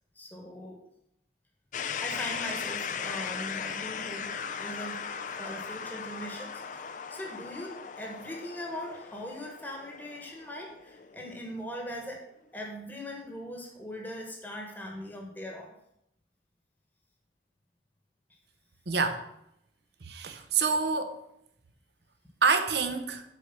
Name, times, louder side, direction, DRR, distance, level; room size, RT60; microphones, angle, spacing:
voice 1, 0.1-0.8 2.0-5.0 5.4-12.2 12.5-15.7 20.3-20.4, equal, 10° left, 0 dB, 1.2 m, -40 dB
sound 1, 1.7-11.6, left 6 dB, 45° left, 0.4 m, -38 dB
voice 2, 18.9-19.2 20.0-21.2 22.4-23.2, right 5 dB, 70° right, 8 dB, 0.8 m, -27 dB
6.8 x 4.7 x 5.8 m, 0.80 s
head